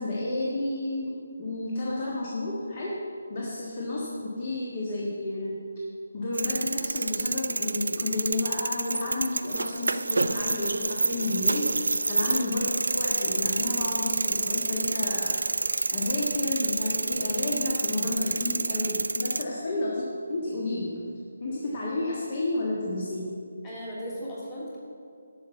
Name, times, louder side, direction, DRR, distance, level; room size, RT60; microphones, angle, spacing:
voice 1, 0.0-3.0 3.3-5.6 6.1-12.6 12.9-20.0 20.3-21.0 21.4-23.3, left 2 dB, 35° left, -4 dB, 1.5 m, -31 dB
sound 1, 6.3-19.4, right 3 dB, 85° right, 0.5 m, -28 dB
voice 2, 23.6-24.8, equal, 15° left, -7 dB, 2.9 m, -38 dB
12.0 x 5.9 x 7.2 m, 2.4 s
hypercardioid pair, 170°, 0 cm